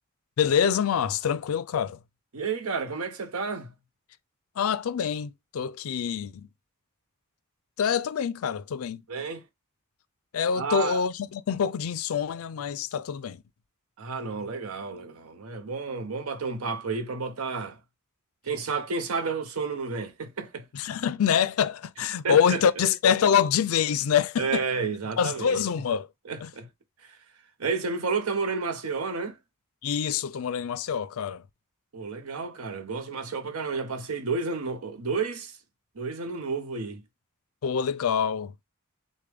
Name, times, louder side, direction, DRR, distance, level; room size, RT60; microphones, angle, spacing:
voice 1, 0.4-2.0 4.6-6.5 7.8-9.0 10.3-13.4 20.7-24.6 25.2-26.1 26.4-26.5 29.8-31.4 37.6-38.5, left 7 dB, 70° left, 0.4 m, -25 dB
voice 2, 2.3-3.7 9.1-9.4 10.5-11.0 14.0-17.8 18.4-20.7 22.2-22.6 24.4-25.7 26.2-26.7 27.6-29.4 31.9-35.6 36.0-37.0, right 4 dB, 90° right, 0.9 m, -31 dB
6.4 x 2.2 x 3.4 m
head